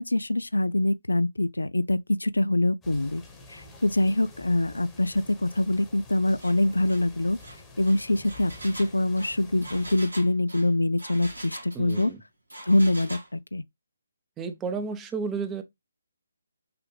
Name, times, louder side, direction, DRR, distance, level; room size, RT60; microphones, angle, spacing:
voice 1, 0.0-3.2 3.5-7.4 7.8-12.1 12.6-13.6, left 1 dB, 80° left, 0.3 m, -24 dB
sound 1, 2.8-10.0, left 2 dB, 10° left, 1.1 m, -48 dB
Engine, 6.4-6.6 6.9-7.1 7.4-12.1 12.5-13.3, right 1 dB, 80° right, 1.5 m, -43 dB
voice 2, 11.7-12.2 14.4-15.6, right 5 dB, 15° right, 0.7 m, -32 dB
5.8 x 2.5 x 3.2 m
figure-of-eight pair, 145°, 0 cm